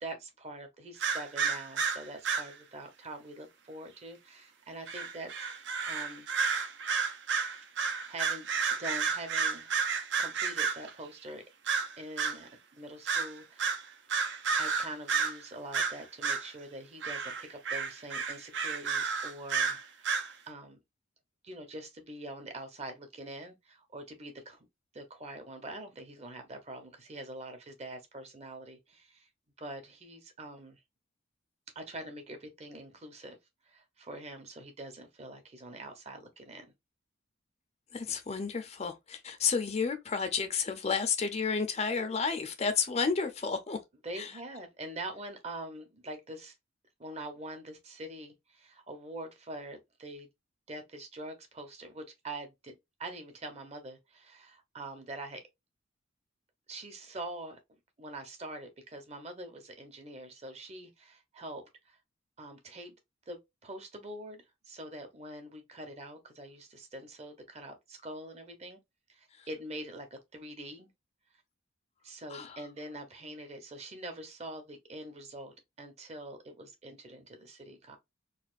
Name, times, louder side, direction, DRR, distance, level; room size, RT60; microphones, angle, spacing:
voice 1, 0.0-6.3 7.8-8.5 8.8-9.7 10.2-11.4 12.0-13.7 14.6-20.8 21.4-24.6 24.9-29.3 29.6-30.8 31.7-33.4 33.7-36.7 44.0-46.5 47.0-50.3 50.7-52.7 53.0-55.4 56.7-57.6 58.0-62.0 62.4-62.9 63.3-68.8 69.1-70.9 72.0-78.0, right 1 dB, 35° right, 0.8 m, -44 dB
sound 1, 1.0-2.5 4.9-10.9 11.7-12.4 13.1-13.3 13.6-15.4 15.7-16.5 17.0-20.3, right 5 dB, 60° right, 0.5 m, -31 dB
voice 2, 37.9-43.8 44.2-44.3 69.4-69.5 72.3-72.6, left 5 dB, 35° left, 0.5 m, -31 dB
4.0 x 2.4 x 2.4 m
head